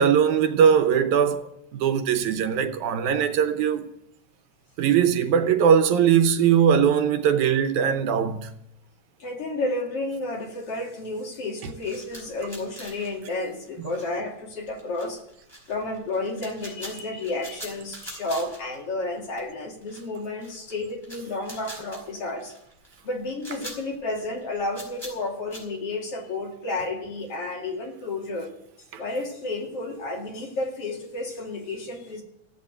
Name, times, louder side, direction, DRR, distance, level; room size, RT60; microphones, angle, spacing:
voice 1, 0.0-3.8 4.8-8.5 13.8-13.9 28.9-29.0, right 8 dB, 90° right, 2.4 m, -20 dB
voice 2, 9.2-15.2 15.7-22.5 23.0-28.5 29.0-32.2, left 2 dB, 55° left, 3.3 m, -31 dB
sound 1, 11.8-14.3 14.5-18.9 19.2-19.4 19.8-20.7 21.0-25.6, equal, 10° left, 5.3 m, -43 dB
14.5 x 8.7 x 8.0 m
omnidirectional pair, 3.3 m